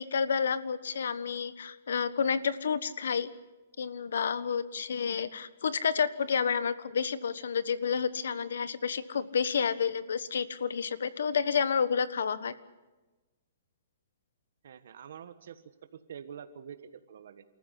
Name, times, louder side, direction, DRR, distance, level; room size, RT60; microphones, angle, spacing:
voice 1, 0.0-3.3 3.8-12.5, left 6 dB, 80° left, 15 dB, 1.3 m, -30 dB
voice 2, 14.6-15.6 15.9-17.4, right 8 dB, 65° right, 10 dB, 1.4 m, -46 dB
29.0 x 14.5 x 8.3 m, 1.2 s
hypercardioid pair, 160°, 0 cm